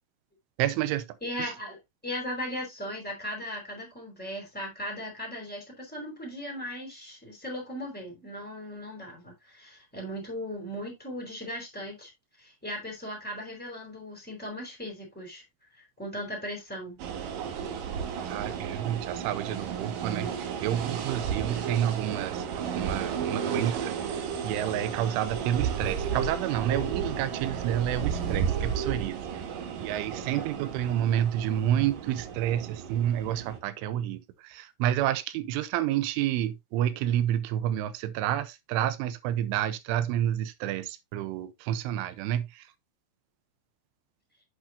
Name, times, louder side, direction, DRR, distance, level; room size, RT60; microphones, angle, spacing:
voice 1, 0.6-1.0 1.4-1.5 18.2-23.9 24.4-29.2 29.8-42.6, right 11 dB, 85° right, 3.3 m, -29 dB
voice 2, 1.2-1.8 2.0-12.1 12.4-15.4 16.0-17.0 30.3-30.7, equal, ahead, 4.7 m, -37 dB
sound 1, 17.0-33.6, right 7 dB, 65° right, 2.3 m, -33 dB
8.9 x 8.0 x 2.7 m
omnidirectional pair, 5.5 m